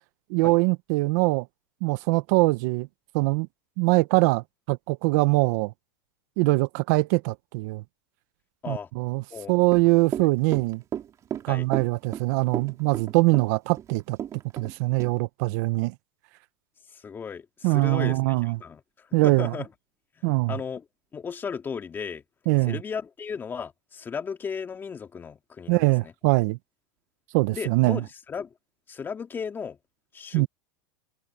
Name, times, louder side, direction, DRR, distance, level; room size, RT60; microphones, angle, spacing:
voice 1, 0.3-1.5 1.8-2.9 3.1-3.5 3.8-5.7 6.4-7.8 8.7-10.8 11.4-14.2 14.5-15.9 17.6-18.6 19.1-19.5 20.2-20.6 22.5-22.8 25.7-26.6 27.3-28.0 30.3-30.5, right 24 dB, 55° right, 1.0 m, -23 dB
Run / Walk footsteps, 9.6-14.7 15.0-15.1, right 10 dB, 30° right, 3.1 m, -33 dB
voice 2, 17.0-18.8 19.2-19.7 20.5-20.8 21.1-22.2 22.7-26.1 27.5-28.5 28.9-29.8 30.1-30.5, left 6 dB, 20° left, 2.5 m, -35 dB
supercardioid pair, 135°, 11 cm